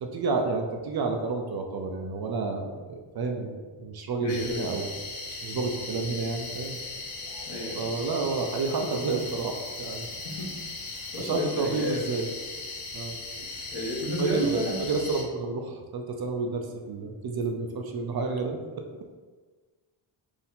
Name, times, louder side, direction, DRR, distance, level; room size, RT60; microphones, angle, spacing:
voice 1, 0.0-4.9 5.4-6.8 7.7-10.1 11.2-12.3 12.9-13.2 13.6-13.7 14.2-18.8, right 3 dB, 50° right, 3 dB, 0.5 m, -30 dB
voice 2, 4.2-4.9 7.5-7.9 10.1-10.6 11.1-12.0 13.7-14.9, equal, 55° left, -4 dB, 1.4 m, -31 dB
sound 1, 4.3-15.2, left 3 dB, 75° left, 1.0 m, -38 dB
4.4 x 2.7 x 3.6 m, 1.4 s
wide cardioid pair, 130°, 49 cm